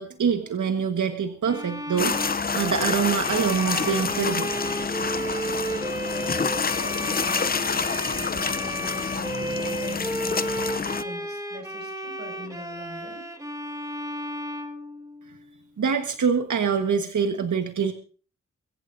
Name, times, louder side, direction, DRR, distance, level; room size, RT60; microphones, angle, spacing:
voice 1, 0.0-4.5 15.8-17.9, right 6 dB, 80° right, 5 dB, 1.4 m, -25 dB
Bowed string instrument, 1.4-15.5, right 1 dB, 10° right, 1.6 m, -33 dB
sound 1, 2.0-11.0, left 5 dB, 30° left, 0.6 m, -28 dB
voice 2, 6.8-10.6 10.9-13.3, right 1 dB, 35° right, 4 dB, 5.4 m, -43 dB
22.5 x 16.0 x 2.6 m, 0.39 s
wide cardioid pair, 155°, 29 cm